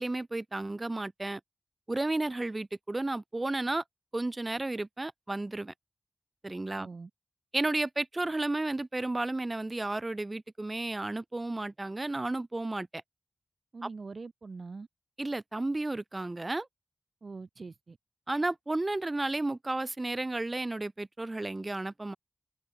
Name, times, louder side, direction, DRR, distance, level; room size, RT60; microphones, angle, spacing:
voice 1, 0.0-1.4 1.9-3.8 4.1-5.7 6.4-6.9 7.5-13.0 15.2-16.7 18.3-22.2, right 2 dB, 35° right, 3.4 m, -32 dB
voice 2, 6.7-7.1 13.7-14.9 17.2-18.0, right 4 dB, 65° right, 1.8 m, -43 dB
cardioid pair, 45°, 0 cm